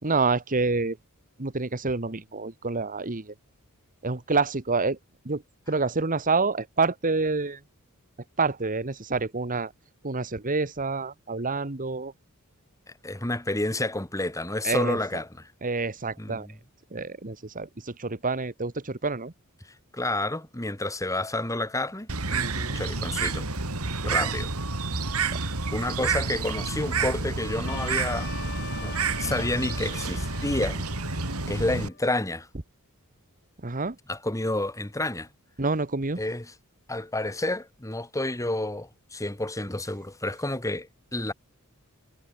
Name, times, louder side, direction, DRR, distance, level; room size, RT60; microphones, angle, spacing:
voice 1, 0.0-1.0 1.4-3.3 4.0-5.0 5.2-5.4 5.7-7.6 8.4-9.7 10.0-12.1 14.6-15.0 15.6-16.5 16.9-19.3 22.3-22.8 24.0-24.3 25.3-25.4 33.6-33.9 35.6-36.2, right 3 dB, 40° right, 1.5 m, -28 dB
voice 2, 13.0-15.5 16.2-16.5 19.9-22.4 22.7-23.5 24.0-24.5 25.4-28.3 28.8-30.8 31.5-32.5 34.1-35.3 36.2-36.5 36.9-41.3, left 2 dB, 15° left, 2.3 m, -30 dB
Bird, 22.1-31.9, right 4 dB, 80° right, 3.3 m, -29 dB
Trumpet, 27.7-32.1, left 7 dB, 50° left, 4.6 m, -43 dB
head